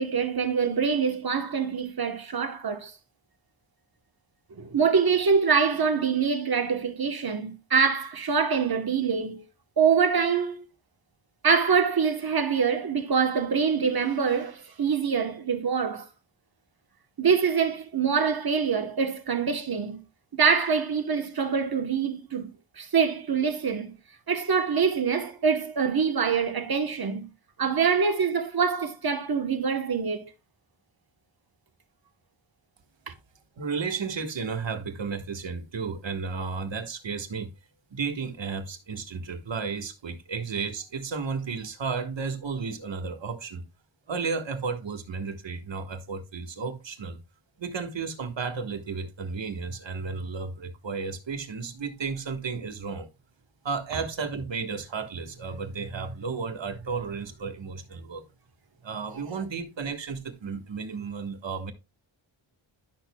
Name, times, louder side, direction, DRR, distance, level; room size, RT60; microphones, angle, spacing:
voice 1, 0.0-2.9 4.6-9.4 9.8-10.6 11.4-16.1 17.2-20.0 20.3-24.0 24.3-27.3 27.6-30.3 33.1-33.2 59.1-59.2, right 6 dB, 50° right, 1.1 m, -25 dB
voice 2, 33.6-37.5 37.9-43.6 44.1-47.2 47.6-53.1 53.6-58.3 58.8-61.7, right 5 dB, 65° right, 1.4 m, -33 dB
11.5 x 6.5 x 2.2 m
wide cardioid pair, 140°, 47 cm